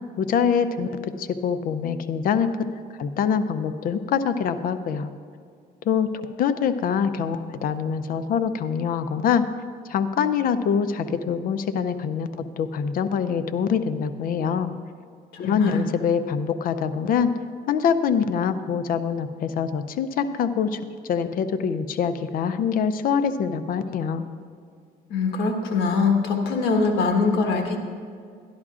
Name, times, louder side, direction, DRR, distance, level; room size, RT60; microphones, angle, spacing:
voice 1, 0.2-2.5 3.0-5.1 5.8-9.4 9.9-12.3 12.6-14.7 15.4-17.3 17.7-20.8 21.1-24.3, left 7 dB, 60° left, 11 dB, 0.5 m, -24 dB
voice 2, 15.3-15.8 25.1-27.8, left 4 dB, 75° left, 3 dB, 1.3 m, -22 dB
12.5 x 11.0 x 2.5 m, 2.2 s
cardioid pair, 110°, 17 cm